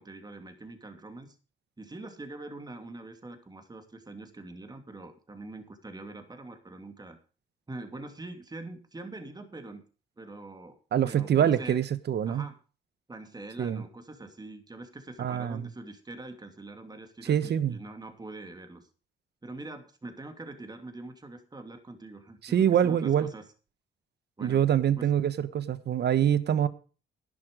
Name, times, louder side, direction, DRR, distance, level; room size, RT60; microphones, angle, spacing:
voice 1, 0.0-1.4 1.8-7.2 7.7-9.8 10.2-10.8 11.0-11.8 12.3-12.6 13.1-18.9 19.4-23.4 24.4-24.6 25.0-25.1, right 2 dB, 20° right, 6 dB, 2.8 m, -44 dB
voice 2, 10.9-12.5 13.6-13.8 15.2-15.7 17.2-17.8 22.4-23.3 24.4-26.7, right 9 dB, 55° right, 15 dB, 1.2 m, -25 dB
11.5 x 10.5 x 5.1 m, 0.36 s
cardioid pair, 90°, 20 cm